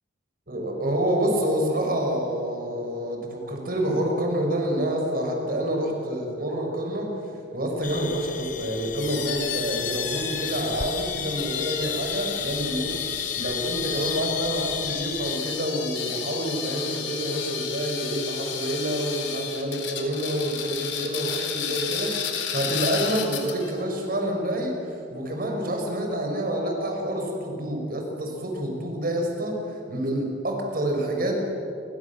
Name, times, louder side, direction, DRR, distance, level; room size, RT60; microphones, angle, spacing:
voice 1, 0.5-7.2 7.5-13.0 13.4-31.4, right 1 dB, 55° right, 1 dB, 6.6 m, -28 dB
sound 1, 7.8-15.4, left 8 dB, 45° left, 0.9 m, -34 dB
sound 2, 9.0-23.8, left 8 dB, 85° left, 3.9 m, -32 dB
29.5 x 25.0 x 7.6 m, 2.7 s
head